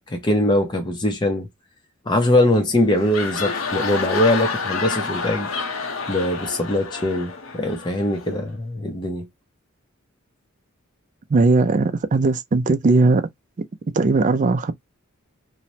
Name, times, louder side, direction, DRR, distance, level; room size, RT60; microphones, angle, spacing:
voice 1, 0.1-1.5 2.1-5.5 6.1-9.3, left 1 dB, 20° left, 0.6 m, -21 dB
sound 1, 2.8-8.4, left 4 dB, 75° left, 0.7 m, -29 dB
voice 2, 11.3-13.2 13.9-14.7, right 3 dB, 40° right, 0.4 m, -18 dB
3.0 x 2.1 x 2.7 m
head